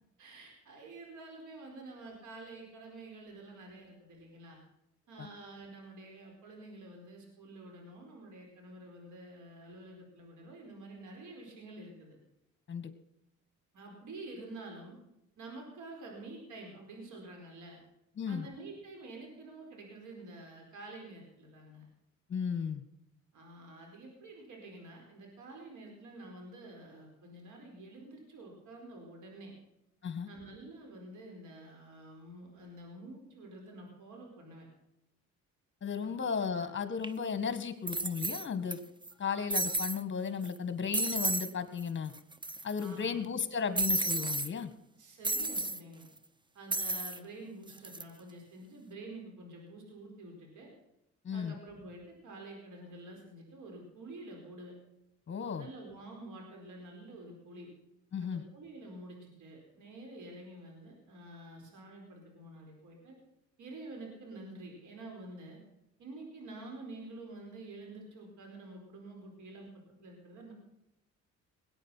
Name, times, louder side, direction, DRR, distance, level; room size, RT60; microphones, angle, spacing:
voice 1, 0.2-4.6 5.1-12.2 13.7-15.0 15.4-17.8 18.3-21.8 23.3-29.5 30.3-34.7 36.0-36.1 36.4-36.7 42.8-43.2 45.0-46.0 46.5-50.7 51.3-54.7 55.6-57.7 58.2-63.1 63.6-65.6 66.0-69.7 70.0-70.5, right 2 dB, 75° right, 1 dB, 4.7 m, -48 dB
voice 2, 18.2-18.5 22.3-22.8 30.0-30.3 35.8-38.8 39.2-42.1 42.6-44.7 51.2-51.5 55.3-55.7 58.1-58.4, left 6 dB, 40° left, 11 dB, 1.8 m, -35 dB
sound 1, 37.0-37.1 37.9-38.7 39.0-39.1 39.5-40.0 40.4-40.6 40.9-41.5 41.8-41.9 42.1-42.9 43.8-44.5 45.2-45.8 46.7-47.2 47.7-48.0, right 2 dB, 15° right, 0.8 m, -32 dB
19.5 x 9.1 x 5.8 m, 0.82 s
cardioid pair, 90°, 30 cm